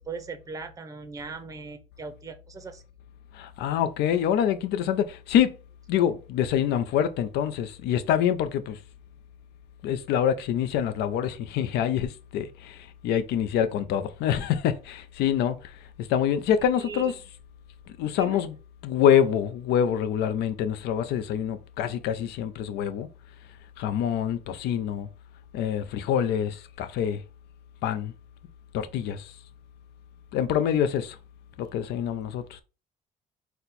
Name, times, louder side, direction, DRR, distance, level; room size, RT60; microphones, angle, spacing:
voice 1, 0.0-2.8 16.8-17.1 18.2-18.4, right 4 dB, 20° right, 0.6 m, -39 dB
voice 2, 3.3-5.6 5.9-8.8 9.8-15.6 16.0-17.1 18.0-18.5 18.8-23.1 23.8-25.1 25.5-27.2 27.8-28.1 28.7-29.3 30.3-31.2 31.6-32.6, left 9 dB, 80° left, 0.5 m, -26 dB
4.2 x 2.1 x 4.0 m
cardioid pair, 110°, 17 cm